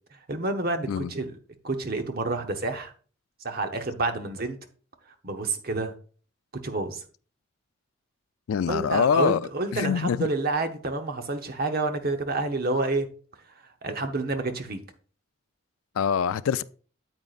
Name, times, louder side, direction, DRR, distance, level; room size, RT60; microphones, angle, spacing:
voice 1, 0.3-1.4 1.6-2.9 3.4-4.6 5.2-5.9 6.6-7.0 8.7-13.1 13.8-14.8, right 2 dB, 45° right, 0.9 m, -28 dB
voice 2, 8.5-9.4 9.7-10.3 16.0-16.6, left 7 dB, 80° left, 0.4 m, -24 dB
9.0 x 8.1 x 2.5 m
head